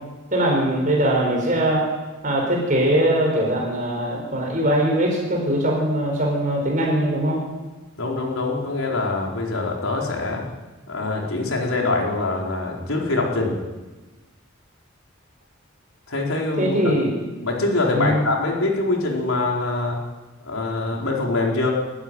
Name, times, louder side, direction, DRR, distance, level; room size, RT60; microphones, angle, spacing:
voice 1, 0.3-1.9 2.2-7.4 16.6-17.1 17.9-18.2, right 1 dB, 40° right, -1 dB, 4.9 m, -21 dB
voice 2, 8.0-10.5 10.9-13.5 16.1-16.9 17.4-20.0 20.4-21.7, left 2 dB, 85° left, -1 dB, 4.5 m, -24 dB
23.0 x 13.0 x 9.1 m, 1.2 s
head